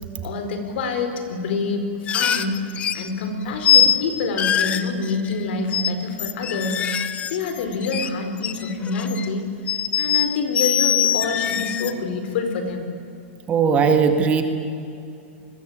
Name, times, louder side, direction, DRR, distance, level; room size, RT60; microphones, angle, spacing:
voice 1, 0.2-2.6 2.9-6.8 7.3-9.5 10.0-12.9, left 4 dB, 60° left, 7 dB, 4.7 m, -26 dB
sound 1, 2.1-3.1 3.6-4.0 4.4-5.4 5.7-5.9 6.2-8.1 8.4-9.3 9.7-11.9, left 8 dB, 20° left, 0.9 m, -22 dB
voice 2, 13.5-14.4, right 6 dB, 20° right, 7 dB, 1.8 m, -18 dB
28.0 x 21.5 x 8.8 m, 2.6 s
supercardioid pair, 165°, 7 cm